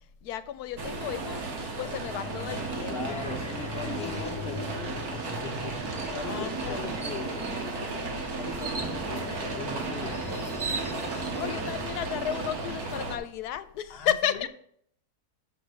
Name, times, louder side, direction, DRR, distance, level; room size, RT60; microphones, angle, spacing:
voice 1, 0.2-1.4 1.8-3.2 4.0-4.6 6.3-7.0 10.9-14.5, left 10 dB, 85° left, 12 dB, 1.2 m, -33 dB
sound 1, 0.8-13.2, right 3 dB, 70° right, 1.9 m, -34 dB
sound 2, 1.7-12.2, left 2 dB, 5° left, 0.8 m, -42 dB
voice 2, 2.9-5.8 6.1-10.2 13.9-14.5, left 5 dB, 50° left, 7 dB, 0.8 m, -40 dB
sound 3, 6.0-6.2 6.6-6.7 7.0-7.6 8.6-9.0 10.1-10.2 10.4-11.3, right 4 dB, 35° right, 0.6 m, -36 dB
7.1 x 6.3 x 6.2 m, 0.66 s
omnidirectional pair, 1.6 m